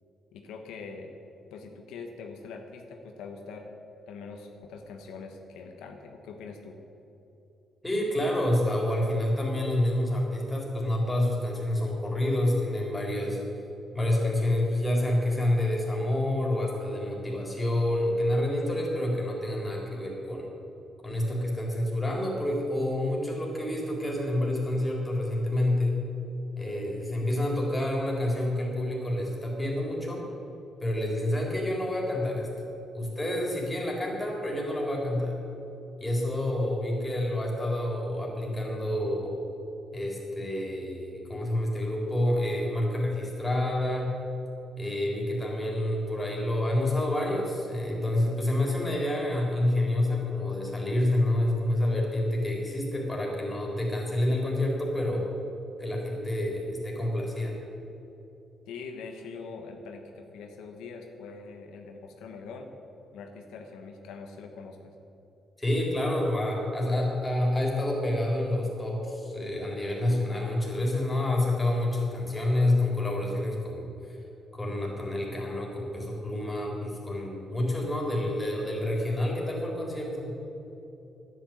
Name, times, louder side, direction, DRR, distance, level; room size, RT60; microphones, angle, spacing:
voice 1, 0.3-1.1 1.5-3.7 4.1-6.8 58.7-62.7 63.1-64.9, left 4 dB, 90° left, 3 dB, 1.2 m, -43 dB
voice 2, 7.8-13.4 13.9-20.5 21.0-26.0 26.6-30.2 30.8-32.5 32.9-35.4 36.0-39.3 39.9-44.1 44.8-55.3 55.8-57.6 65.6-74.2 74.5-80.4, left 1 dB, 15° left, -2 dB, 3.8 m, -28 dB
10.5 x 9.1 x 8.8 m, 2.9 s
cardioid pair, 90°, 0 cm